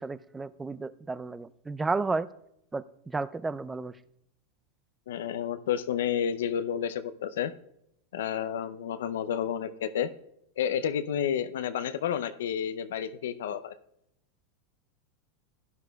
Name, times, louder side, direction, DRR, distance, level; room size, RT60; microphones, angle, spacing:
voice 1, 0.0-2.3 2.7-3.9, right 3 dB, 15° right, 17 dB, 0.4 m, -32 dB
voice 2, 5.1-7.5 8.1-10.1 10.6-13.8, left 9 dB, 80° left, 12 dB, 0.5 m, -30 dB
16.5 x 11.0 x 2.3 m, 0.80 s
hypercardioid pair, 115°, 0 cm